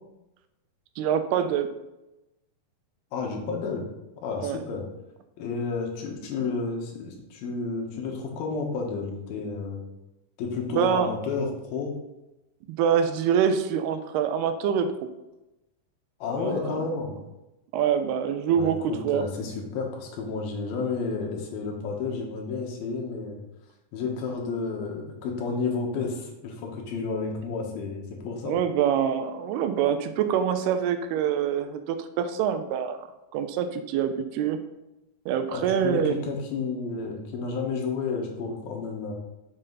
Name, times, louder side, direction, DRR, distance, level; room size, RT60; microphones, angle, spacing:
voice 1, 1.0-1.7 4.4-4.6 10.7-11.1 12.7-14.9 16.3-16.7 17.7-19.2 28.5-33.1 33.3-34.6 35.3-36.2, right 8 dB, 85° right, 9 dB, 2.6 m, -25 dB
voice 2, 3.1-3.8 4.2-4.9 5.4-9.8 10.4-12.0 16.2-17.1 18.5-23.4 23.9-28.6 35.5-39.1, left 4 dB, 75° left, 1 dB, 3.0 m, -31 dB
7.5 x 6.7 x 3.9 m, 0.96 s
omnidirectional pair, 4.6 m